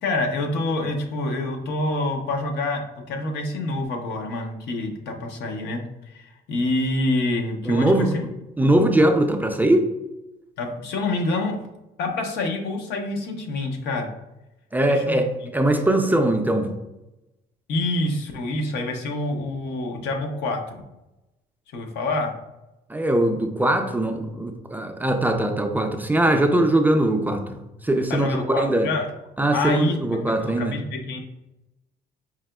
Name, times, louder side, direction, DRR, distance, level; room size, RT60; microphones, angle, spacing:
voice 1, 0.0-2.8 3.1-8.3 10.6-11.6 12.0-14.1 14.9-15.2 17.7-20.8 21.7-22.3 28.1-29.1 29.5-31.2, left 2 dB, 80° left, 3 dB, 0.7 m, -27 dB
voice 2, 7.6-8.1 8.6-9.9 14.7-16.7 22.9-28.9 29.4-30.8, right 1 dB, 10° right, 4 dB, 0.3 m, -21 dB
4.8 x 2.8 x 2.2 m, 0.95 s
cardioid pair, 110°, 17 cm